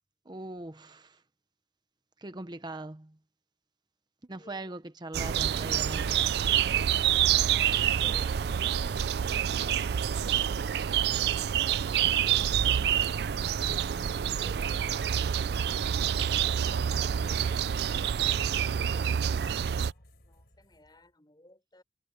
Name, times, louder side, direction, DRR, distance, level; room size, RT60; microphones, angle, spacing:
voice 1, 0.2-1.2 2.2-3.2 4.2-6.3, right 2 dB, 25° right, 0.8 m, -41 dB
voice 2, 4.4-4.8 7.5-9.1 9.4-12.8 13.8-15.9 16.6-21.8, left 1 dB, 25° left, 6.5 m, -57 dB
sound 1, 5.1-19.9, right 9 dB, 65° right, 0.4 m, -27 dB
sound 2, 16.1-21.1, left 1 dB, 60° left, 7.6 m, -58 dB
head